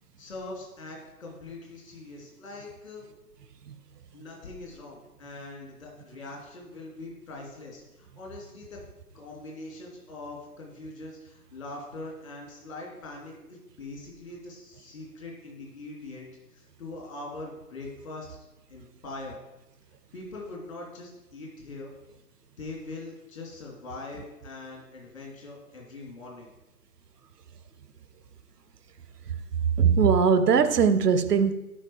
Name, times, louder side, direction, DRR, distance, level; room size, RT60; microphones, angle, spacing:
voice 1, 0.2-3.0 4.1-8.8 9.1-16.3 16.5-18.4 18.7-19.4 20.1-21.9 22.6-26.5, left 2 dB, 55° left, 3.3 m, -42 dB
voice 2, 29.8-31.5, right 6 dB, 70° right, 0.7 m, -20 dB
11.0 x 5.0 x 4.9 m
figure-of-eight pair, 130°, 49 cm